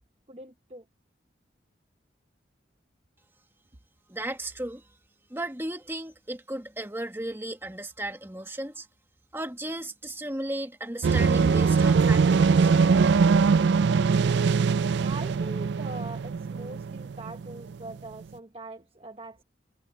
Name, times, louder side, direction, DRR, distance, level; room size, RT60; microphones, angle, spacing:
voice 1, 0.3-0.8 15.0-19.4, right 2 dB, 30° right, 0.9 m, -42 dB
voice 2, 4.1-4.8 5.3-8.9 9.3-12.7, right 1 dB, 10° right, 1.7 m, -35 dB
sound 1, 11.0-17.9, right 5 dB, 65° right, 0.4 m, -22 dB
head